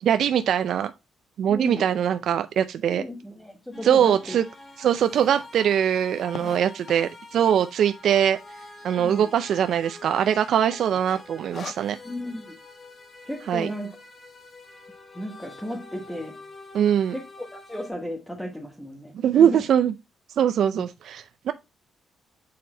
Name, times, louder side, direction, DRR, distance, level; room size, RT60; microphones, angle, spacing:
voice 1, 0.0-0.9 1.4-3.0 3.8-4.4 4.8-8.4 8.8-12.0 13.5-13.7 16.7-17.1 19.1-19.9 20.3-21.5, right 9 dB, 70° right, 0.4 m, -22 dB
voice 2, 1.5-1.8 2.9-4.4 5.2-5.3 9.0-9.3 12.0-12.6 13.2-13.9 15.1-16.4 17.1-19.6 20.7-20.8, left 1 dB, 5° left, 1.3 m, -35 dB
sound 1, 3.7-17.9, left 2 dB, 35° left, 1.6 m, -46 dB
sound 2, 3.8-3.9 4.5-4.6 4.8-4.9 5.2-7.3 7.9-8.4 8.7-8.8 9.0-9.1 9.6-10.0 10.3-10.6 11.0-12.2, left 6 dB, 50° left, 0.5 m, -41 dB
6.6 x 4.2 x 3.8 m
cardioid pair, 90°, 0 cm